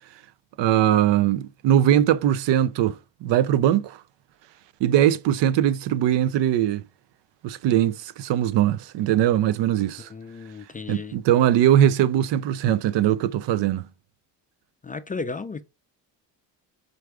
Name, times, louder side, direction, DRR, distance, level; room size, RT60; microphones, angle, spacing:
voice 1, 0.6-4.0 4.8-6.8 7.4-10.1 10.9-13.9, right 11 dB, 75° right, 0.5 m, -21 dB
voice 2, 10.1-11.1 14.8-15.6, left 4 dB, 20° left, 0.3 m, -34 dB
4.5 x 2.6 x 4.6 m
cardioid pair, 70°, 43 cm